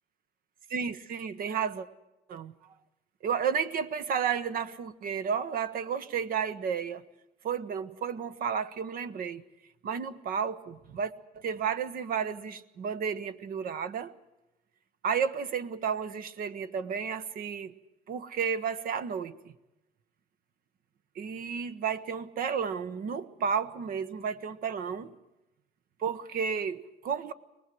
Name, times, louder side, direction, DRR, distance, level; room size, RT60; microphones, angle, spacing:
voice 1, 0.7-1.9 2.3-2.7 3.2-7.0 7.4-9.4 9.8-14.1 15.0-17.7 18.1-19.4 21.1-25.1 26.0-27.3, right 7 dB, 60° right, 1.2 m, -32 dB
23.5 x 19.5 x 7.8 m
cardioid pair, 110°, 17 cm